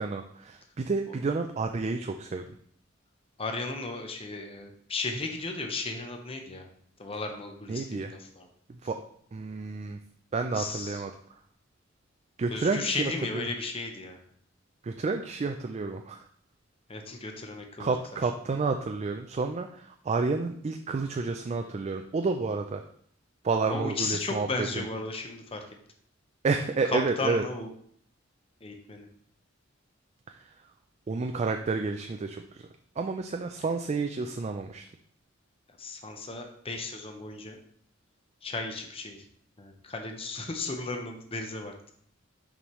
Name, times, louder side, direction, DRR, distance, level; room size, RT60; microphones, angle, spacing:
voice 1, 0.0-2.6 7.7-8.1 8.7-9.0 9.3-10.0 10.3-11.4 12.4-13.5 14.8-16.3 17.8-22.8 23.4-24.8 26.4-27.4 30.3-30.6 31.1-32.7 33.0-34.8, right 4 dB, 35° right, 5 dB, 0.4 m, -30 dB
voice 2, 3.4-6.7 7.0-8.5 10.5-11.0 12.5-14.2 16.9-17.9 23.7-25.6 26.8-27.7 28.6-29.1 35.8-37.6 38.4-39.2 39.6-41.7, left 3 dB, 30° left, 3 dB, 0.8 m, -35 dB
7.0 x 5.2 x 3.1 m, 0.62 s
head